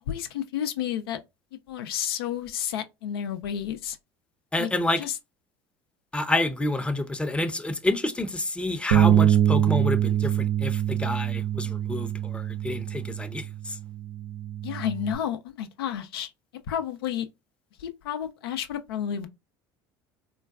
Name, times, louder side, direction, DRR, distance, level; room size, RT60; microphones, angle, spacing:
voice 1, 0.1-1.2 1.7-4.0 4.6-4.7 5.0-5.2 14.6-16.3 16.7-17.3 17.8-19.3, left 9 dB, 80° left, 0.4 m, -31 dB
voice 2, 4.5-5.0 6.1-13.8, left 2 dB, 10° left, 0.5 m, -29 dB
Bass guitar, 8.9-15.2, right 11 dB, 75° right, 0.4 m, -24 dB
3.7 x 2.2 x 2.3 m
hypercardioid pair, 70°, 12 cm